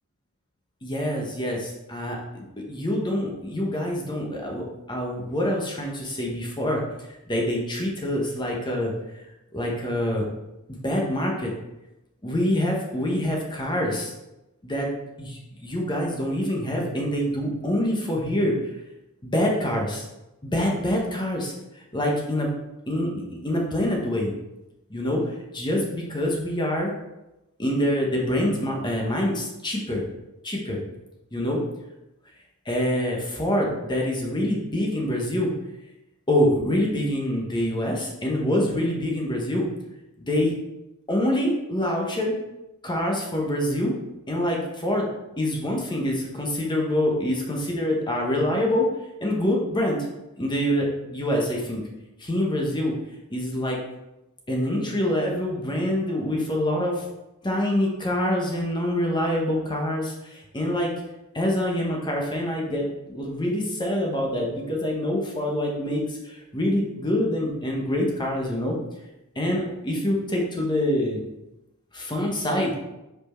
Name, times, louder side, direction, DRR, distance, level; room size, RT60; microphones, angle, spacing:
voice 1, 0.8-6.8 7.3-8.9 9.5-10.2 10.8-11.5 12.2-14.1 14.6-14.9 15.2-18.6 19.2-20.0 20.4-21.5 21.9-22.5 22.9-24.3 24.9-25.2 25.5-26.9 27.6-30.0 30.4-30.8 31.3-31.6 32.7-35.5 36.3-39.7 40.2-40.5 41.1-42.4 42.8-43.9 44.3-45.1 45.4-48.9 49.2-50.1 50.4-51.8 52.2-52.9 53.3-53.8 54.5-57.0 57.4-60.9 61.3-68.8 69.3-71.2 71.9-72.7, left 1 dB, 20° left, -1 dB, 1.1 m, -25 dB
5.5 x 4.4 x 4.4 m, 0.94 s
head